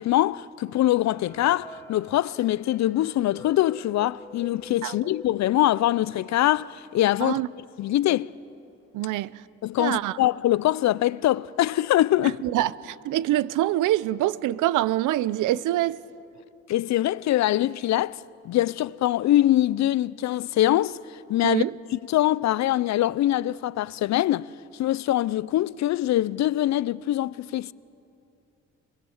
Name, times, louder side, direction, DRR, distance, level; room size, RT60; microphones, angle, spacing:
voice 1, 0.0-7.4 7.8-8.3 9.6-12.4 16.7-18.2 18.4-21.0 21.3-21.6 21.9-27.7, left 14 dB, 65° left, 0.5 m, -23 dB
sound 1, 0.9-6.4 6.8-6.9 7.1-7.3 8.0-8.1 8.5-8.8, left 2 dB, 5° left, 2.5 m, -47 dB
voice 2, 8.9-9.3 9.8-10.2 12.4-16.0 21.4-21.7, right 14 dB, 85° right, 0.6 m, -25 dB
26.5 x 20.0 x 7.2 m
cardioid pair, 90°, 30 cm